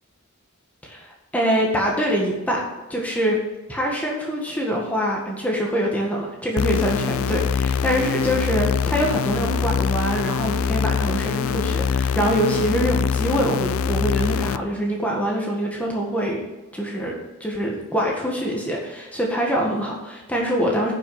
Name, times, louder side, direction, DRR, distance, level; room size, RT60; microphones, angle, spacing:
voice 1, 0.8-2.6 2.9-3.4 3.7-16.4 16.7-20.9, equal, 5° left, -2 dB, 1.6 m, -24 dB
sound 1, 6.6-14.6, left 6 dB, 75° left, 0.4 m, -23 dB
9.4 x 6.0 x 6.5 m, 1.1 s
head